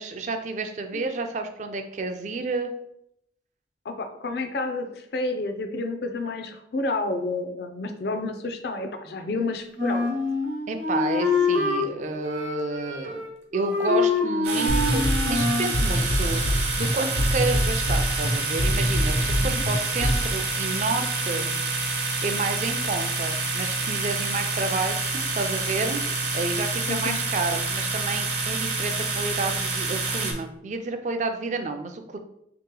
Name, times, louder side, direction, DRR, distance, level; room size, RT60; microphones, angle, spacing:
voice 1, 0.0-2.7 10.7-13.2 13.5-21.5 22.2-26.0 26.3-32.2, right 3 dB, 40° right, 6 dB, 0.4 m, -30 dB
voice 2, 3.9-10.1 19.4-19.6 26.9-27.2, left 2 dB, 60° left, 7 dB, 0.4 m, -30 dB
Wind instrument woodwind instrument, 9.8-11.9 12.2-13.3 13.5-15.7, left 3 dB, 85° right, 1.0 m, -25 dB
sound 1, 14.4-30.3, right 3 dB, 55° right, 0.8 m, -28 dB
sound 2, 14.7-20.3, equal, 85° left, 1.2 m, -25 dB
3.1 x 2.9 x 3.7 m, 0.77 s
head